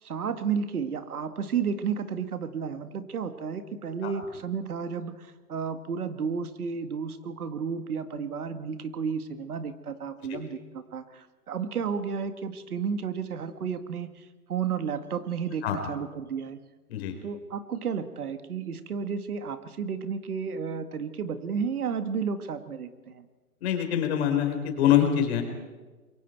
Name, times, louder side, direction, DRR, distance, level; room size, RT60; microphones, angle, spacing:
voice 1, 0.0-16.6 17.2-23.3, right 6 dB, 70° right, 10 dB, 1.9 m, -32 dB
voice 2, 23.6-25.4, left 10 dB, 40° left, 4 dB, 4.5 m, -24 dB
27.5 x 23.0 x 4.6 m, 1.3 s
hypercardioid pair, 135°, 46 cm